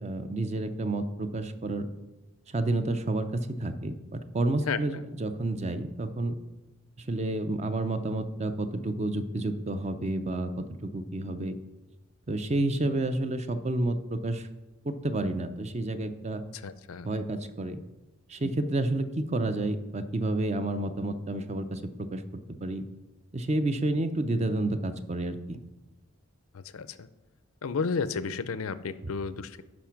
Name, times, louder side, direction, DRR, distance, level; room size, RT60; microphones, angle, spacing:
voice 1, 0.0-1.9 2.5-6.4 7.0-11.6 12.3-14.5 14.8-16.4 17.0-17.8 18.3-22.2 22.6-22.8 23.3-25.6, right 2 dB, 30° right, 10 dB, 0.5 m, -30 dB
voice 2, 16.5-17.1 26.5-27.1 27.6-29.6, left 5 dB, 80° left, 15 dB, 0.5 m, -32 dB
10.5 x 5.0 x 5.9 m, 1.1 s
head